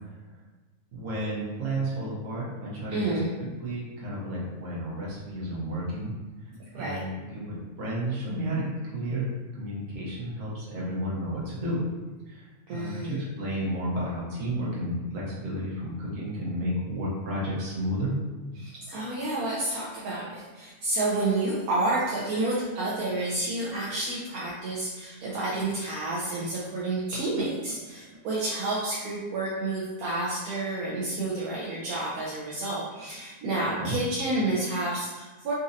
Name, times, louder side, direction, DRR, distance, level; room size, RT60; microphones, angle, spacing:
voice 1, 0.9-3.2 3.6-6.1 6.7-9.3 9.6-11.8 12.3-18.1 33.8-33.9, right 1 dB, 65° right, -6 dB, 1.3 m, -32 dB
voice 2, 2.9-3.3 6.7-7.0 12.7-13.2 18.6-35.5, right 2 dB, 80° right, -6 dB, 1.1 m, -30 dB
4.1 x 2.5 x 2.6 m, 1.2 s
omnidirectional pair, 1.6 m